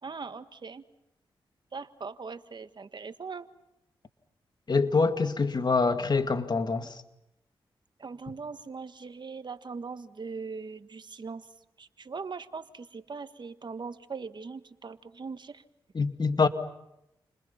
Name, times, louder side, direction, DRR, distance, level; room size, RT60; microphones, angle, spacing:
voice 1, 0.0-0.8 1.7-3.5 8.0-11.5 11.8-15.6, right 4 dB, 50° right, 1.6 m, -40 dB
voice 2, 4.7-7.0 15.9-16.5, left 4 dB, 50° left, 2.4 m, -25 dB
29.5 x 29.5 x 5.8 m
supercardioid pair, 45°, 10 cm